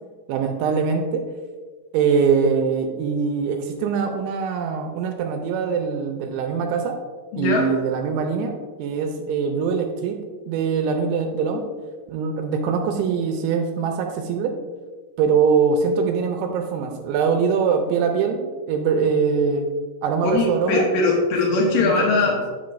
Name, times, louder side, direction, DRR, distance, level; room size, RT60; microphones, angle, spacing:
voice 1, 0.3-1.2 1.9-7.0 7.4-8.5 8.8-10.2 10.5-11.6 12.1-14.5 15.2-19.7 20.0-20.8 21.6-21.9 22.3-22.4, right 6 dB, 85° right, 4 dB, 2.8 m, -22 dB
voice 2, 7.3-7.7 20.2-22.3, left 3 dB, 90° left, -1 dB, 1.9 m, -20 dB
9.5 x 5.8 x 2.5 m, 1.4 s
omnidirectional pair, 5.2 m